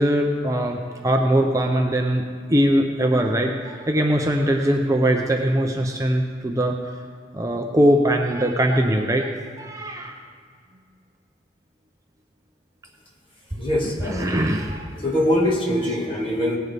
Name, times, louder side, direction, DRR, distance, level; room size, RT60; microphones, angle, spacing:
voice 1, 0.0-2.2 2.5-6.7 7.3-10.2 13.8-15.3 15.8-16.0, right 1 dB, 15° right, 2 dB, 0.6 m, -21 dB
voice 2, 13.6-14.5 15.0-16.6, left 1 dB, 25° left, -2 dB, 1.9 m, -23 dB
18.5 x 10.5 x 3.5 m, 2.1 s
head